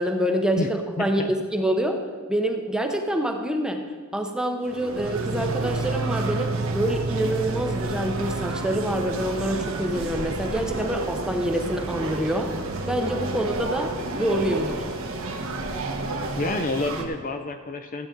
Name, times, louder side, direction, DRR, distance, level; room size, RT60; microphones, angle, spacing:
voice 1, 0.0-3.8 4.1-12.5 12.8-14.8, right 1 dB, 5° right, 3 dB, 0.7 m, -26 dB
voice 2, 1.0-1.5 16.4-18.1, left 2 dB, 40° left, 6 dB, 0.6 m, -29 dB
sound 1, 4.6-17.0, right 2 dB, 70° right, 1.2 m, -31 dB
sound 2, 5.0-17.0, right 3 dB, 30° right, 0.3 m, -34 dB
13.5 x 8.7 x 3.8 m, 1.5 s
head